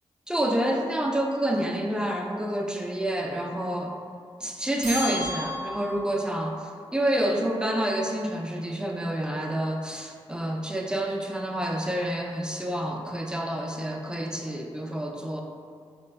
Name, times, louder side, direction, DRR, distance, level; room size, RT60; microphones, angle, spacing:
voice 1, 0.3-4.0 4.4-15.4, right 1 dB, 5° right, 1 dB, 0.3 m, -28 dB
sound 1, 4.8-6.2, equal, 90° right, 0.6 m, -33 dB
3.2 x 2.2 x 2.2 m, 2.2 s
cardioid pair, 45°, 12 cm